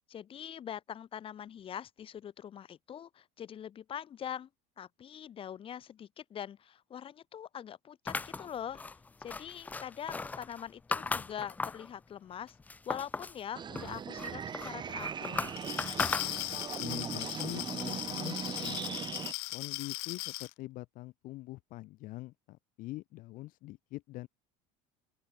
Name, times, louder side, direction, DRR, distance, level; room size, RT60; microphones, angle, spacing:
voice 1, 0.1-4.5 4.8-8.8 9.2-12.6 12.9-15.5, left 9 dB, 35° left, 2.7 m, -43 dB
sound 1, 8.1-11.9 12.3-13.4 13.8-16.8, left 4 dB, 10° left, 0.3 m, -37 dB
sound 2, 13.5-19.3, right 7 dB, 30° right, 1.7 m, -39 dB
Glass, 15.5-20.5, left 40 dB or more, 80° left, 2.4 m, -38 dB
voice 2, 16.5-19.0 19.5-24.3, left 18 dB, 60° left, 1.5 m, -44 dB
open air
cardioid pair, 130°, 16 cm